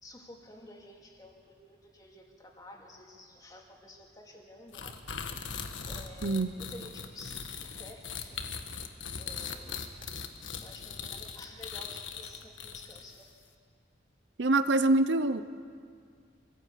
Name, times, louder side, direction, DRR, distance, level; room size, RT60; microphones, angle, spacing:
voice 1, 0.0-5.0 5.9-8.4 9.2-9.9 10.6-13.3, left 1 dB, 20° left, 0 dB, 2.6 m, -51 dB
sound 1, 4.7-13.2, left 6 dB, 85° left, 1.5 m, -40 dB
voice 2, 14.4-15.4, right 2 dB, 70° right, 12 dB, 0.7 m, -25 dB
24.5 x 15.0 x 8.4 m, 2.1 s
head